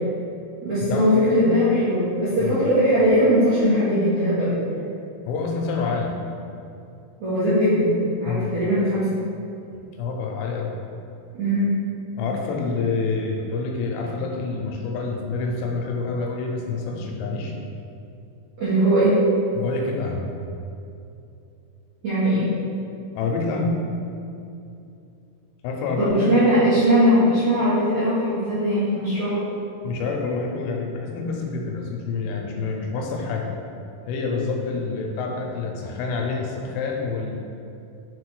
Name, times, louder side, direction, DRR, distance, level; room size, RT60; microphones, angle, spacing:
voice 1, 0.6-4.6 7.2-7.9 8.2-9.2 11.3-11.8 18.6-19.2 22.0-22.5 26.0-29.4, equal, 60° right, -14 dB, 1.9 m, -20 dB
voice 2, 5.3-6.2 8.2-8.6 9.9-10.7 12.2-17.6 19.5-20.3 23.2-23.8 25.6-26.4 29.8-33.5 34.1-37.3, left 4 dB, 80° left, 1 dB, 3.2 m, -27 dB
6.8 x 4.0 x 4.8 m, 2.7 s
omnidirectional pair, 5.7 m